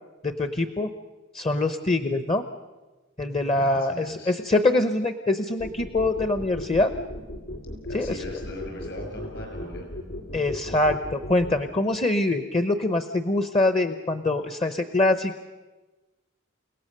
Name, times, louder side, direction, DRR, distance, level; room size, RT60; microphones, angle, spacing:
voice 1, 0.2-0.9 1.3-2.4 3.2-6.9 7.9-8.2 10.3-15.4, left 2 dB, 30° left, 10 dB, 0.8 m, -24 dB
voice 2, 3.5-4.4 7.8-9.9, left 2 dB, 60° left, 3 dB, 6.4 m, -39 dB
sound 1, 5.6-11.5, left 1 dB, 90° left, 3.7 m, -36 dB
29.5 x 17.5 x 6.7 m, 1.2 s
head